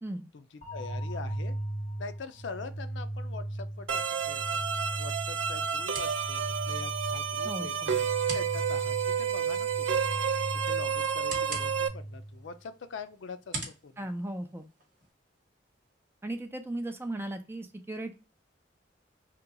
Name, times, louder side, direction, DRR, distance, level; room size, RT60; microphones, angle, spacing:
sound 1, 0.6-12.6, right 1 dB, 35° left, 1.8 m, -38 dB
voice 1, 0.7-1.6 2.0-4.6 5.0-8.1 8.3-10.3 10.6-14.1, left 4 dB, 75° left, 0.4 m, -43 dB
sound 2, 3.9-11.9, right 7 dB, 80° right, 0.5 m, -30 dB
sound 3, 4.2-15.1, right 3 dB, 45° right, 1.2 m, -46 dB
voice 2, 7.4-7.9 14.0-14.6 16.2-18.1, right 1 dB, 10° right, 0.4 m, -36 dB
2.9 x 2.3 x 3.7 m
head